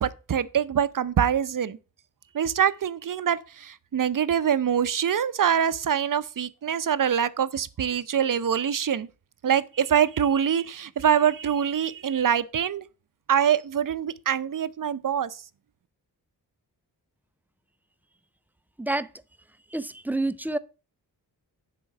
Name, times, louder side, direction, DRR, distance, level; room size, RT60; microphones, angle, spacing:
voice 1, 0.0-1.8 2.3-9.1 9.4-12.8 13.3-15.3, right 8 dB, 50° right, 0.6 m, -24 dB
voice 2, 18.8-19.1 19.7-20.6, right 2 dB, 5° right, 0.4 m, -28 dB
10.5 x 3.8 x 5.9 m
wide cardioid pair, 80°, 41 cm